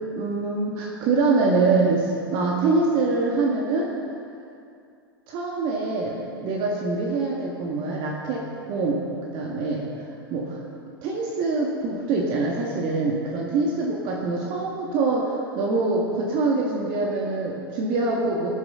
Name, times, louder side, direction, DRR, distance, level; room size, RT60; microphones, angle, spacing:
voice 1, 0.1-3.9 5.3-6.2 6.4-9.9 10.3-10.6 11.0-18.5, right 3 dB, 40° right, -2 dB, 1.9 m, -24 dB
18.0 x 11.0 x 3.9 m, 2.4 s
figure-of-eight pair, 100°, 13 cm